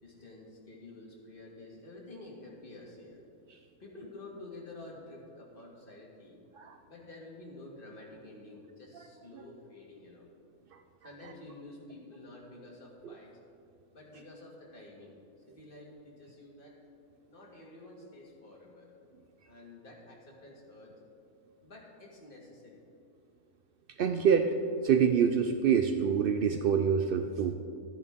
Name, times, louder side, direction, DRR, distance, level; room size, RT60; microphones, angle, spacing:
voice 1, 0.0-3.2 3.8-6.4 6.9-10.3 11.0-13.4 13.9-15.2 15.5-16.8 17.3-18.9 19.5-21.0 21.6-22.8, left 2 dB, 35° left, -3 dB, 2.0 m, -50 dB
voice 2, 24.0-24.5 24.8-27.5, right 7 dB, 85° right, 6 dB, 0.4 m, -26 dB
13.0 x 10.0 x 3.6 m, 2.5 s
omnidirectional pair, 1.5 m